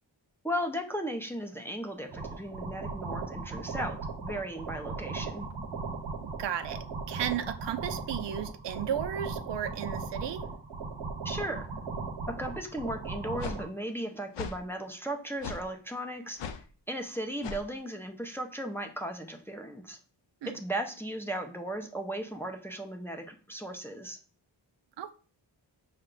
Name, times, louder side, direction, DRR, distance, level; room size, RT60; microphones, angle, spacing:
voice 1, 0.4-5.5 11.2-11.7 12.3-16.4 16.9-20.0 20.4-24.2, equal, 5° left, 0.5 m, -36 dB
sound 1, 2.1-13.6, right 4 dB, 90° right, 0.9 m, -37 dB
voice 2, 6.2-10.5 20.4-20.5 25.0-25.1, right 9 dB, 70° right, 0.5 m, -34 dB
sound 2, 13.4-13.6 14.3-14.6 15.4-15.6 16.4-16.6 17.4-17.6, left 6 dB, 75° left, 0.5 m, -37 dB
5.7 x 2.2 x 3.7 m
wide cardioid pair, 105°, 44 cm